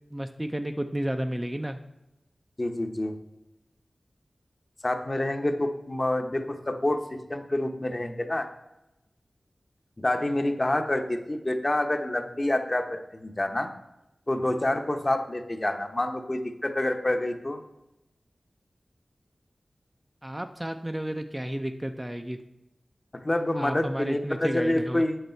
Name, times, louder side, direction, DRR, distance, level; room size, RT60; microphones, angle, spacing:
voice 1, 0.1-1.8 20.2-22.4 23.6-25.0, right 1 dB, 15° right, 6 dB, 0.5 m, -32 dB
voice 2, 2.6-3.1 4.8-7.0 7.3-8.5 10.0-13.7 14.3-17.6 23.1-25.2, left 1 dB, 30° left, 6 dB, 0.9 m, -27 dB
8.0 x 7.2 x 4.5 m, 0.91 s
wide cardioid pair, 85°, 0 cm